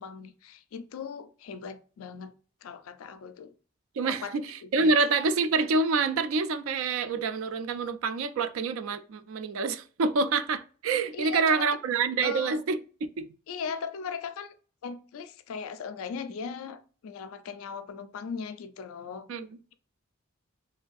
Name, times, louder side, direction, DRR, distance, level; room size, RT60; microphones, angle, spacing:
voice 1, 0.0-2.3 2.6-3.5 4.1-4.4 4.6-4.9 11.1-11.6 12.2-12.6 13.5-14.6 14.8-19.3, left 5 dB, 80° left, 0.3 m, -38 dB
voice 2, 4.0-12.8 13.2-13.3 19.3-19.5, right 4 dB, 70° right, 0.3 m, -27 dB
3.1 x 2.6 x 2.3 m
head